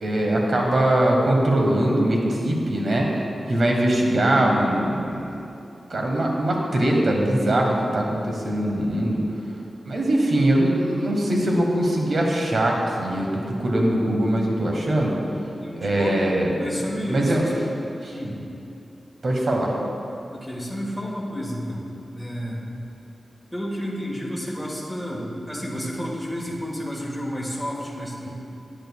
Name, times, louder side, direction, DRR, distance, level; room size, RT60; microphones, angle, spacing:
voice 1, 0.0-3.1 3.5-5.3 5.9-9.2 9.8-15.2 15.8-16.5 17.1-17.4 18.0-18.1 19.2-19.8, right 1 dB, 65° right, -1 dB, 1.3 m, -21 dB
voice 2, 15.5-16.2 16.6-17.7 18.1-18.4 20.3-22.6 23.5-28.4, equal, 5° right, -5 dB, 1.5 m, -31 dB
10.5 x 8.8 x 2.3 m, 2.8 s
wide cardioid pair, 70°, 0 cm